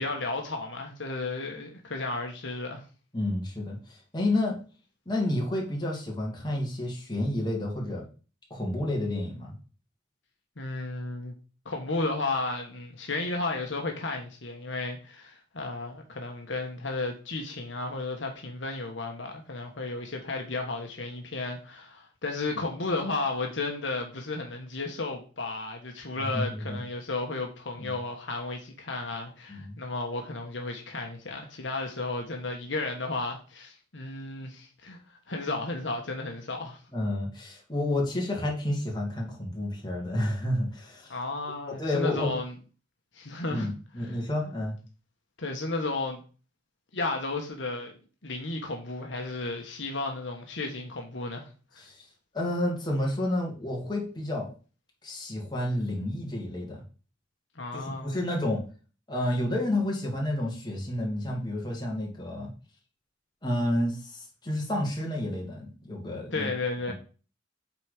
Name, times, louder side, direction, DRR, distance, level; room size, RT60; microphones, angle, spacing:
voice 1, 0.0-2.8 10.6-11.3 11.6-35.0 35.3-36.8 41.1-42.5 43.1-43.7 44.0-44.2 45.4-46.2 46.9-47.9 48.2-51.8 57.5-58.2 66.3-66.9, left 3 dB, 75° left, 1.3 m, -33 dB
voice 2, 3.1-4.5 5.1-8.0 8.5-9.6 26.2-26.8 27.8-27.9 29.5-29.8 36.9-41.1 41.7-42.3 43.5-44.8 51.8-52.1 52.3-54.5 55.0-56.8 57.7-58.6 59.1-62.5 63.4-66.5 66.9-67.0, left 1 dB, 25° left, 2.4 m, -30 dB
7.9 x 4.2 x 5.1 m
head